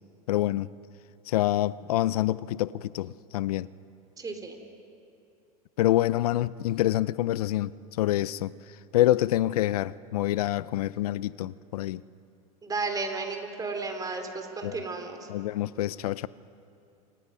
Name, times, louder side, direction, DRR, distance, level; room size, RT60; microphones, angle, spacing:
voice 1, 0.3-0.7 1.3-3.7 5.8-7.7 8.0-8.5 8.9-12.0 14.6-14.8 15.3-16.3, left 14 dB, 80° left, 0.5 m, -26 dB
voice 2, 4.2-4.6 12.6-15.3, right 3 dB, 20° right, 3.3 m, -33 dB
29.5 x 26.0 x 5.6 m
hypercardioid pair, 105°, 19 cm